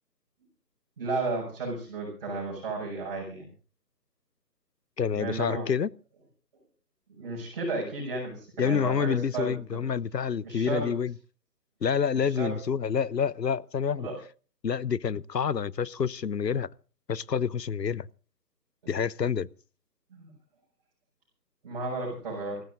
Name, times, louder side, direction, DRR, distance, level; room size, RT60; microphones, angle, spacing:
voice 1, 1.0-3.5 5.2-5.7 7.1-9.8 10.4-10.9 12.2-12.6 13.9-14.2 18.8-19.0 20.1-20.3 21.6-22.6, right 3 dB, 25° right, 6.4 m, -33 dB
voice 2, 5.0-5.9 8.6-11.1 11.8-14.1 14.6-16.7 17.1-18.1 18.9-19.5, left 7 dB, 80° left, 0.9 m, -28 dB
28.5 x 15.5 x 2.6 m
figure-of-eight pair, 165°, 49 cm